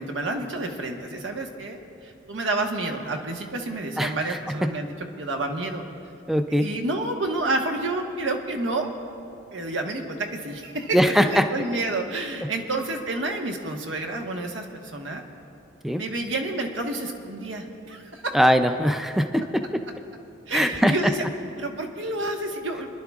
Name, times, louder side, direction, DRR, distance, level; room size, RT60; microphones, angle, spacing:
voice 1, 0.0-1.8 2.0-5.8 6.6-8.9 9.5-11.0 11.2-15.2 16.0-18.3 20.5-21.3 21.6-22.9, right 2 dB, 90° right, 2 dB, 1.2 m, -29 dB
voice 2, 4.0-4.4 6.3-6.7 10.9-11.4 15.8-16.0 18.3-19.4 20.5-21.0, equal, ahead, 6 dB, 0.4 m, -21 dB
27.5 x 11.0 x 2.4 m, 2.7 s
head